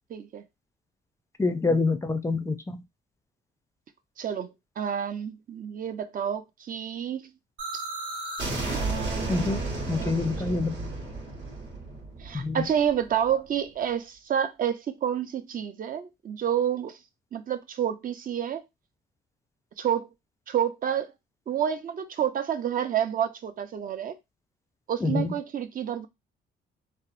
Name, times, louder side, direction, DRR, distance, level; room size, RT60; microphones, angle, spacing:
voice 1, 0.1-0.4 4.2-7.3 8.7-9.6 10.0-10.1 10.5-10.6 12.2-17.0 17.3-18.6 19.8-20.1 20.5-21.1 21.5-24.1 24.9-26.1, right 9 dB, 45° right, 0.5 m, -29 dB
voice 2, 1.4-2.8 9.3-9.6 9.9-10.9 12.3-12.6 25.0-25.3, left 3 dB, 15° left, 0.4 m, -26 dB
sound 1, 7.6-13.3, right 2 dB, 70° right, 1.2 m, -33 dB
2.8 x 2.0 x 2.4 m
cardioid pair, 90°, 20 cm